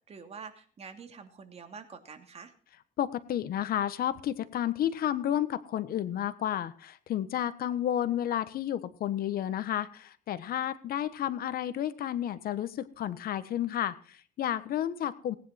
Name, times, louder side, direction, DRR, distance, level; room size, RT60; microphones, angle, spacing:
voice 1, 0.1-2.5, right 5 dB, 40° right, 6 dB, 2.9 m, -46 dB
voice 2, 3.0-15.4, left 11 dB, 60° left, 13 dB, 1.4 m, -31 dB
19.0 x 10.0 x 4.4 m, 0.42 s
cardioid pair, 110°, 17 cm